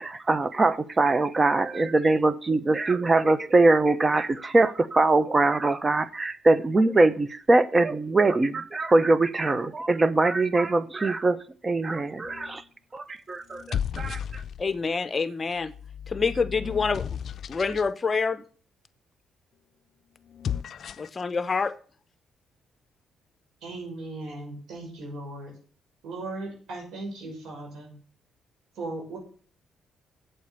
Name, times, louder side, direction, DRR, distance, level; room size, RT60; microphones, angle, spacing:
voice 1, 0.0-11.4 11.6-12.6 12.9-14.4, right 2 dB, 25° right, 15 dB, 1.0 m, -22 dB
sound 1, 12.2-12.7 13.5-14.9 15.6-17.9 20.2-21.2, left 8 dB, 60° left, 0.5 m, -34 dB
voice 2, 14.6-15.7 16.1-17.0 17.5-18.4 21.0-21.7, left 4 dB, 30° left, 13 dB, 0.9 m, -26 dB
voice 3, 23.6-25.5 26.0-28.0 28.8-29.2, right 2 dB, 80° right, 0 dB, 5.9 m, -37 dB
8.4 x 7.9 x 6.9 m, 0.43 s
cardioid pair, 90°, 0 cm